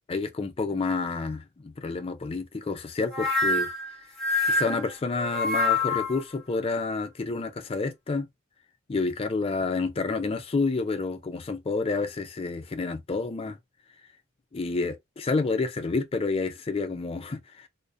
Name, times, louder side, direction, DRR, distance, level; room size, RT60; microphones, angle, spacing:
voice 1, 0.1-3.7 4.5-8.3 8.9-13.6 14.5-17.7, left 3 dB, 30° left, 0.3 m, -29 dB
sound 1, 3.1-6.2, left 2 dB, ahead, 0.8 m, -26 dB
2.3 x 2.1 x 2.5 m
head